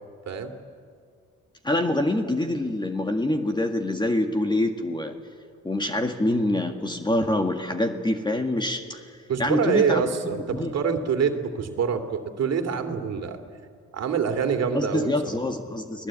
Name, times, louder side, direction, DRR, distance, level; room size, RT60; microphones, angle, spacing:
voice 1, 1.6-5.1 5.6-9.0 9.4-10.7 14.7-16.1, left 1 dB, 15° left, 5 dB, 1.9 m, -25 dB
voice 2, 9.3-13.4 13.9-15.4, right 6 dB, 55° right, 6 dB, 2.7 m, -25 dB
30.0 x 19.0 x 8.9 m, 2.1 s
cardioid pair, 90°, 30 cm